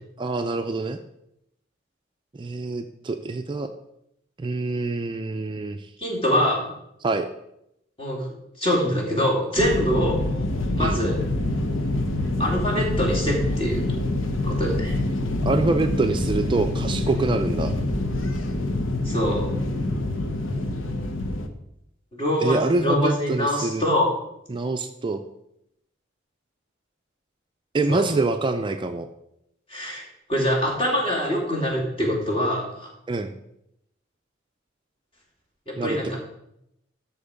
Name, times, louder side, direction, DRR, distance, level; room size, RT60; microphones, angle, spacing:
voice 1, 0.2-1.0 2.3-3.7 4.4-5.9 7.0-7.3 10.8-11.0 15.5-17.7 22.4-23.8 24.5-25.2 27.7-29.1 33.1-33.3 35.8-36.0, right 3 dB, 25° right, 7 dB, 0.4 m, -25 dB
voice 2, 6.0-6.7 8.0-8.3 8.6-10.2 10.8-11.2 12.4-13.9 14.4-14.9 19.0-19.5 22.1-24.1 27.9-28.0 29.7-30.0 30.3-32.9 35.7-36.2, equal, 30° left, -3 dB, 2.8 m, -24 dB
sound 1, 9.6-21.5, left 1 dB, 85° left, 1.0 m, -26 dB
12.5 x 4.4 x 5.1 m, 0.81 s
head